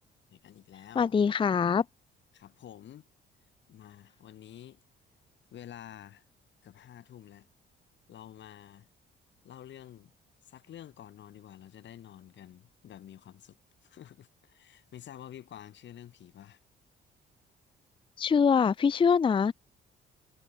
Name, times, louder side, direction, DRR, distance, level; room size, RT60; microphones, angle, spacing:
voice 1, 0.3-1.2 2.3-3.1 3.7-4.8 5.5-6.2 6.6-7.5 8.1-8.9 9.4-10.1 10.4-13.6 13.8-16.6, left 11 dB, 65° left, 2.0 m, -49 dB
voice 2, 1.0-1.8 18.2-19.5, left 6 dB, 25° left, 0.5 m, -24 dB
cardioid pair, 90°, 20 cm